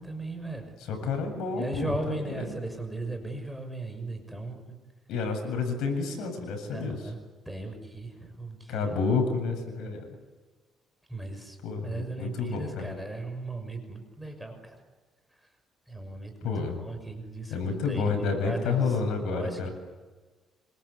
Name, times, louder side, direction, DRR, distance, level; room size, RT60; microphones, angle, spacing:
voice 1, 0.0-0.7 1.5-4.8 6.7-7.2 7.5-9.0 11.1-11.6 11.8-14.7 15.9-16.5 16.8-18.9 19.3-19.7, right 2 dB, 5° right, 4 dB, 6.4 m, -37 dB
voice 2, 0.9-2.6 5.1-7.0 8.7-10.1 11.6-12.9 16.4-16.8 17.5-19.7, left 4 dB, 80° left, 5 dB, 7.7 m, -30 dB
26.5 x 25.5 x 8.4 m, 1.3 s
cardioid pair, 125°, 0 cm